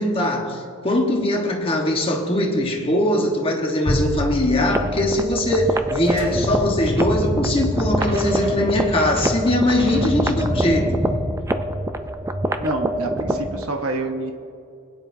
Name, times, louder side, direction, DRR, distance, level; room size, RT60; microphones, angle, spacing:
voice 1, 0.0-11.0, left 1 dB, 25° left, 0 dB, 1.2 m, -21 dB
Bowed string instrument, 3.8-10.0, equal, 60° left, 2.0 m, -31 dB
sound 1, 4.7-13.7, right 1 dB, 15° right, 0.4 m, -26 dB
sound 2, 6.1-11.2, equal, 30° right, 2.5 m, -27 dB
voice 2, 12.6-14.3, right 2 dB, 75° right, 4 dB, 0.9 m, -27 dB
20.0 x 9.8 x 2.7 m, 2.5 s
head